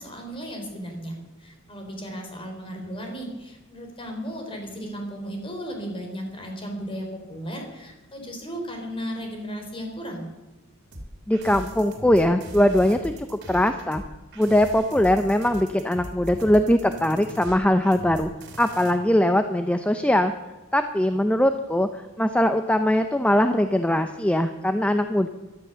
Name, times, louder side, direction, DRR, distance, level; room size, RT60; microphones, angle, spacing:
voice 1, 0.0-10.3, equal, 25° left, 2 dB, 4.1 m, -35 dB
sound 1, 10.9-18.9, right 1 dB, 55° right, 3.1 m, -40 dB
voice 2, 11.3-14.0 14.4-18.3 18.6-20.3 20.7-25.3, left 1 dB, 5° left, 8 dB, 0.6 m, -21 dB
16.0 x 12.5 x 6.9 m, 1.1 s
head